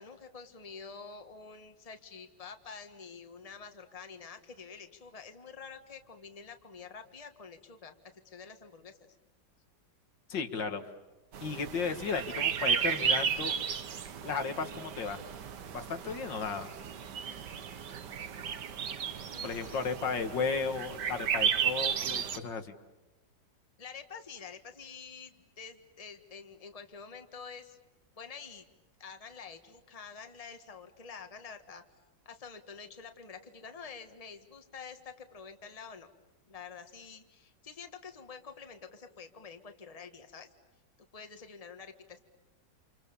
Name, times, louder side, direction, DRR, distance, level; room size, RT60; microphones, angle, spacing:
voice 1, 0.0-8.0 8.2-9.0 19.3-20.1 23.8-27.8 28.2-28.6 29.0-31.8 32.2-36.1 36.5-40.5 41.1-42.2, left 5 dB, 20° left, 7 dB, 1.5 m, -48 dB
voice 2, 10.3-10.8 11.4-13.5 14.2-15.2 15.7-16.7 19.4-22.7, left 5 dB, 75° left, 7 dB, 2.3 m, -34 dB
sound 1, 11.3-22.4, right 7 dB, 65° right, 1.8 m, -34 dB
29.0 x 27.5 x 7.0 m, 1.1 s
omnidirectional pair, 2.0 m